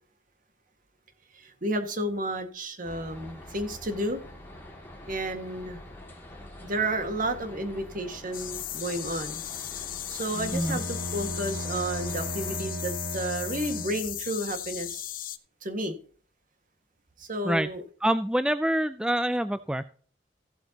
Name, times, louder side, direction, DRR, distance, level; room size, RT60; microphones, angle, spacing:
voice 1, 1.3-4.2 5.1-5.8 6.6-9.4 10.1-15.0 15.6-16.0 17.2-17.8, right 1 dB, 50° right, 6 dB, 1.8 m, -32 dB
sound 1, 2.8-12.6, left 1 dB, 10° left, 2.5 m, -46 dB
sound 2, 8.3-15.4, left 12 dB, 50° left, 0.8 m, -37 dB
Bowed string instrument, 10.3-14.3, right 1 dB, 85° right, 1.3 m, -36 dB
voice 2, 18.0-19.8, right 1 dB, 5° right, 12 dB, 0.3 m, -26 dB
16.0 x 7.9 x 2.9 m, 0.43 s
head